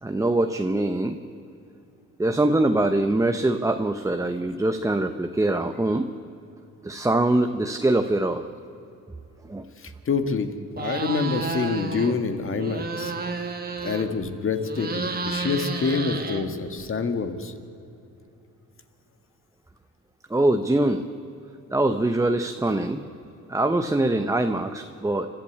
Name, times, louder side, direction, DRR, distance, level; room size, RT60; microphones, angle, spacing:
voice 1, 0.0-1.2 2.2-6.1 6.8-8.4 9.4-9.6 20.3-21.0 21.7-23.0 23.5-25.3, right 2 dB, 10° right, 6 dB, 0.9 m, -23 dB
voice 2, 9.8-10.5 10.7-13.5 13.8-17.5, left 5 dB, 45° left, 7 dB, 1.9 m, -27 dB
sound 1, 10.7-12.2 12.5-14.3 14.6-16.8, right 4 dB, 30° right, 2.0 m, -31 dB
30.0 x 12.0 x 8.6 m, 2.9 s
cardioid pair, 90°, 30 cm